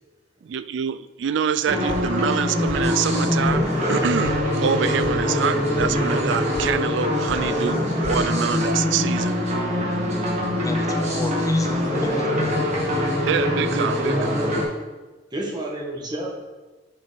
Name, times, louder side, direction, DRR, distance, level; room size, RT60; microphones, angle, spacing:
voice 1, 0.4-9.4 13.2-14.4, right 7 dB, 70° right, 14 dB, 0.3 m, -26 dB
sound 1, 1.7-14.6, left 1 dB, 40° right, 1.7 m, -23 dB
sound 2, 1.9-2.4 2.7-3.2 3.4-3.6 3.9-4.4 4.6-5.1 5.4-5.9 6.2-6.7 6.9-7.4 7.7-8.2, left 2 dB, 75° left, 0.7 m, -36 dB
voice 2, 10.6-12.7, left 2 dB, 20° left, 7 dB, 0.4 m, -36 dB
voice 3, 14.1-14.7 15.3-16.4, right 1 dB, 25° right, -2 dB, 1.2 m, -30 dB
7.6 x 4.4 x 3.9 m, 1.2 s
head